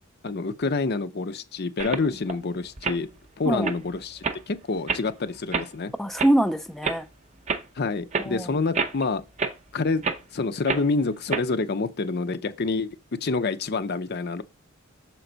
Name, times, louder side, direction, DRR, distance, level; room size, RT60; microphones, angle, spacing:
voice 1, 0.2-3.1 3.4-5.9 7.8-9.2 9.7-10.0 10.3-13.0 13.2-14.4, left 3 dB, 50° left, 0.6 m, -27 dB
sound 1, 1.8-2.3 2.8-3.0 3.5-3.8 4.2-4.4 4.9-5.0 5.5-5.7 6.2-6.3 6.8-7.0 7.5-7.7 8.1-8.3 8.7-9.0 9.4-9.5 10.0-10.2 10.7-10.8 11.3-11.4, right 4 dB, 35° right, 0.7 m, -27 dB
voice 2, 6.0-7.1 8.2-8.5, right 1 dB, ahead, 0.4 m, -24 dB
6.9 x 4.5 x 3.9 m
head